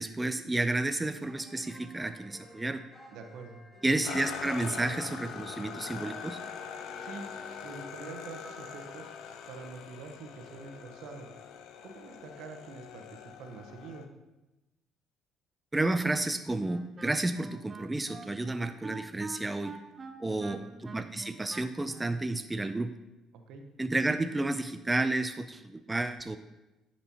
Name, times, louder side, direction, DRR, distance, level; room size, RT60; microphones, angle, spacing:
voice 1, 0.0-2.8 3.8-6.4 15.7-19.8 20.2-22.9 23.8-26.4, right 2 dB, 15° right, 9 dB, 0.4 m, -31 dB
sound 1, 1.2-8.9, equal, 20° left, 1.7 m, -53 dB
voice 2, 3.1-3.6 7.0-7.3 7.6-9.1 9.5-11.3 11.8-14.0 20.2-20.7 23.3-23.6, right 4 dB, 70° right, 5 dB, 0.8 m, -46 dB
sound 2, 4.0-14.0, left 7 dB, 70° left, 0.4 m, -43 dB
Wind instrument woodwind instrument, 16.6-22.2, right 4 dB, 35° right, 0.8 m, -45 dB
10.0 x 4.2 x 2.9 m, 1.0 s
hypercardioid pair, 60°, 0 cm